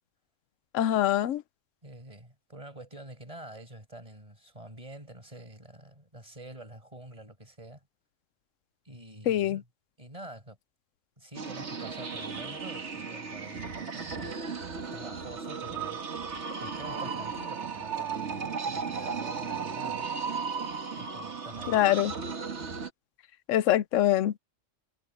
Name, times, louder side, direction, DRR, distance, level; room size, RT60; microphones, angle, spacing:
voice 1, 0.7-1.4 9.3-9.6 21.7-22.1 23.5-24.4, left 12 dB, 85° left, 1.0 m, -24 dB
voice 2, 1.8-7.8 8.8-9.7 10.0-10.6 11.2-14.4 14.8-20.1 21.0-21.8, right 1 dB, 25° right, 5.8 m, -47 dB
sound 1, 11.3-22.9, right 5 dB, 65° right, 2.0 m, -35 dB
omnidirectional pair, 1.3 m